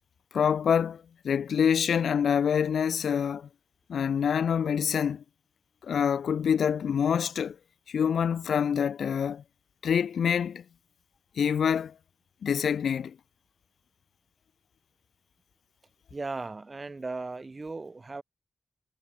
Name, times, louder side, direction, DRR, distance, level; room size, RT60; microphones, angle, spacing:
voice 1, 0.3-3.5 3.9-5.2 5.8-7.6 7.9-9.4 9.8-10.6 11.4-11.9 12.4-13.2, left 7 dB, 85° left, 0.6 m, -26 dB
voice 2, 16.1-18.2, right 3 dB, 35° right, 6.1 m, -37 dB
cardioid pair, 60°, 0 cm